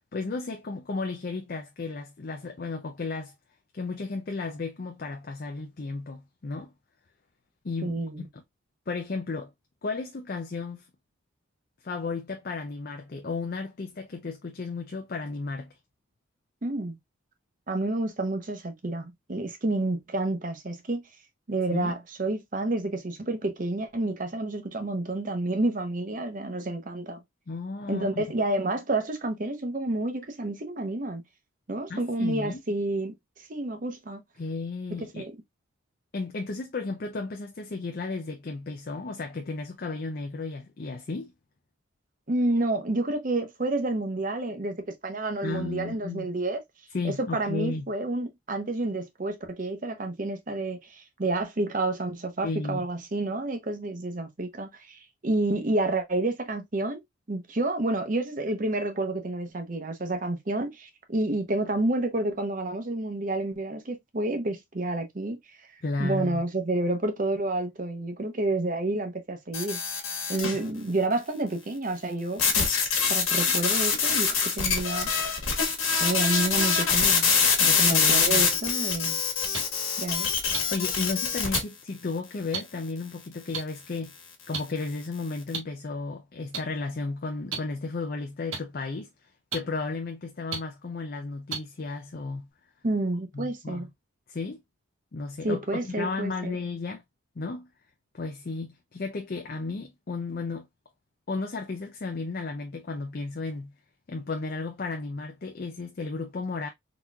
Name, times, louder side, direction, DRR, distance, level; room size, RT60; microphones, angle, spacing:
voice 1, 0.1-3.3 3.7-6.7 7.6-8.0 8.3-8.4 8.9-9.5 9.8-10.9 11.8-15.8 21.7-21.9 27.5-28.2 31.9-32.6 34.4-35.3 36.1-41.3 45.4-46.3 46.9-47.9 52.4-52.8 65.8-66.4 77.6-78.5 80.2-80.4 80.7-84.2 84.5-92.5 93.3-93.9 94.3-94.6 95.1-97.0 97.4-97.7 98.1-100.7 101.3-103.7 104.1-106.7, left 3 dB, 45° left, 0.5 m, -34 dB
voice 2, 7.8-8.3 16.6-17.0 17.7-21.0 21.5-27.2 27.9-31.2 31.7-34.2 35.2-35.3 42.3-46.6 47.0-57.0 57.3-65.7 66.0-69.8 70.3-72.7 73.1-75.1 75.8-79.2 80.0-80.3 92.8-93.9 95.4-96.6, right 2 dB, 40° right, 0.7 m, -29 dB
sound 1, 69.5-70.6 72.4-81.6, left 5 dB, 85° left, 1.4 m, -24 dB
sound 2, 79.5-79.6 80.5-80.6 81.5-81.6 82.5-82.6 83.5-83.6 84.5-84.6 85.5-85.6 86.5-86.6 87.5-87.6 88.5-88.6 89.5-89.6 90.5-90.6 91.5-91.6 92.5-92.6, right 5 dB, 75° right, 1.2 m, -30 dB
4.0 x 2.9 x 2.2 m
head